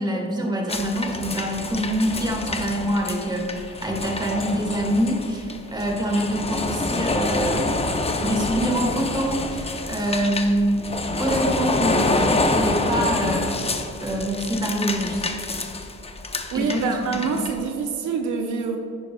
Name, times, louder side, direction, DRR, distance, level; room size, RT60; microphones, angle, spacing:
voice 1, 0.0-7.8 8.2-10.9 11.2-13.6 14.0-15.3 16.5-17.5, right 1 dB, 15° right, 0 dB, 1.8 m, -25 dB
sound 1, 0.7-17.6, left 2 dB, 20° left, 0.7 m, -27 dB
voice 2, 16.5-18.8, right 5 dB, 75° right, 3 dB, 0.8 m, -26 dB
10.5 x 9.3 x 2.3 m, 2.8 s
cardioid pair, 90°, 30 cm